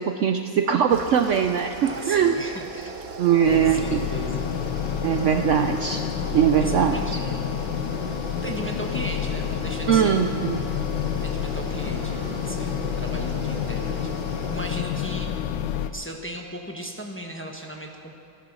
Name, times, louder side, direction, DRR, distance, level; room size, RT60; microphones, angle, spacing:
voice 1, 0.0-2.4 3.2-4.1 5.0-6.0 6.3-7.0 9.9-10.7, right 8 dB, 85° right, 7 dB, 0.6 m, -21 dB
sound 1, 0.9-14.7, right 5 dB, 50° right, 0.7 m, -38 dB
voice 2, 1.8-3.0 3.4-4.5 6.6-7.4 7.9-8.0 8.3-10.6 11.1-15.3 15.9-18.1, right 1 dB, 10° left, 2 dB, 0.9 m, -37 dB
sound 2, 3.4-15.9, left 9 dB, 85° left, 1.4 m, -29 dB
15.0 x 13.0 x 6.3 m, 2.7 s
omnidirectional pair, 1.9 m